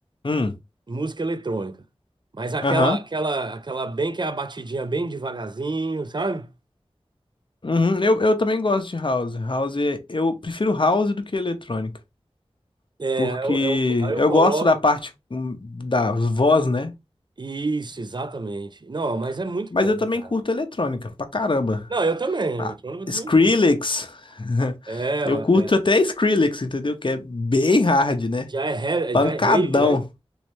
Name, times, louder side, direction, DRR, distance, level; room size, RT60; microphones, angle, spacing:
voice 1, 0.2-0.5 2.6-3.0 7.6-11.9 13.2-15.0 15.3-16.9 19.7-21.9 22.6-22.7 23.1-28.5 29.1-30.0, left 2 dB, 50° left, 0.7 m, -21 dB
voice 2, 0.9-1.8 2.3-6.5 13.0-14.7 17.4-20.0 21.9-23.5 24.9-25.7 28.5-30.0, right 3 dB, 45° right, 0.4 m, -27 dB
3.1 x 3.1 x 3.0 m
wide cardioid pair, 45°, 11 cm